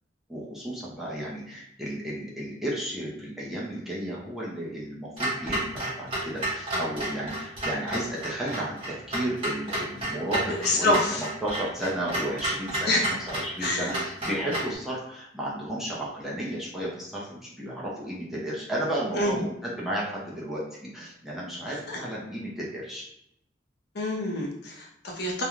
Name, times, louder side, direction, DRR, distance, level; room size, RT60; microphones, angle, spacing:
voice 1, 0.3-20.7 20.9-23.1, right 1 dB, ahead, -6 dB, 0.5 m, -33 dB
Clock, 5.2-14.8, right 1 dB, 30° right, 1.2 m, -32 dB
voice 2, 10.5-11.2 12.9-13.0 13.6-13.9 19.2-19.4 21.9-22.0 23.9-25.4, left 1 dB, 55° left, -1 dB, 0.6 m, -26 dB
2.4 x 2.2 x 3.0 m, 0.76 s
head